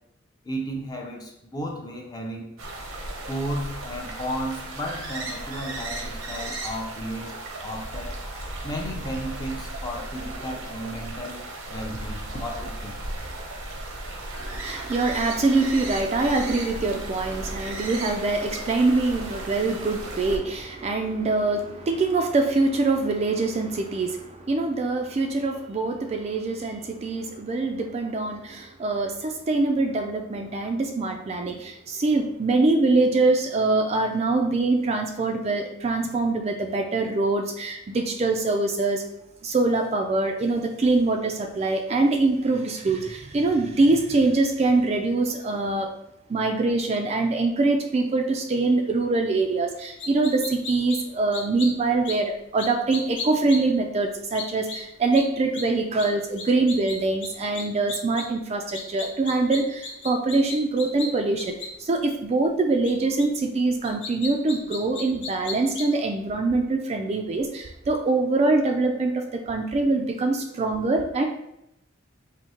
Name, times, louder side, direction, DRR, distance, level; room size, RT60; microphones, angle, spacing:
voice 1, 0.4-2.5 3.3-7.3 7.6-8.2 8.6-13.0, equal, 20° left, 1 dB, 0.5 m, -34 dB
sound 1, 2.6-20.4, right 2 dB, 90° right, 0.8 m, -35 dB
voice 2, 14.4-39.0 39.4-45.9 46.3-71.3, right 3 dB, 30° right, 4 dB, 0.3 m, -24 dB
Chicks very young, 50.0-51.0 51.3-51.7 52.0-52.1 52.6-53.6 54.3-54.8 55.1-55.2 55.5-55.6 56.0-56.1 56.4-57.0 57.2-57.3 57.5-58.2 58.7-61.1 61.4-61.7 62.8-62.9 63.2-63.3 63.8-66.0, left 4 dB, 65° left, 0.8 m, -34 dB
4.3 x 2.7 x 2.9 m, 0.81 s
head